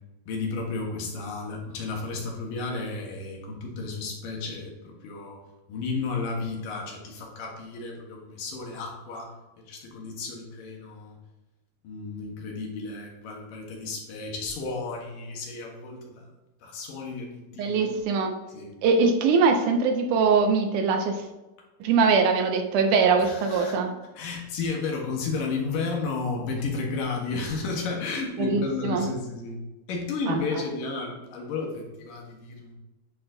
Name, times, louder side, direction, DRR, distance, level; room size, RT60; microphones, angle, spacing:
voice 1, 0.3-5.4 5.7-9.3 9.7-11.2 11.8-16.3 16.6-18.0 18.5-18.7 23.2-23.8 24.2-29.6 29.9-32.7, left 4 dB, 70° left, -1 dB, 3.0 m, -33 dB
voice 2, 17.6-18.3 18.8-21.3 21.8-23.9 28.4-29.1 30.3-30.4, right 4 dB, 80° right, 4 dB, 1.9 m, -22 dB
10.5 x 4.3 x 3.9 m, 1.1 s
omnidirectional pair, 4.2 m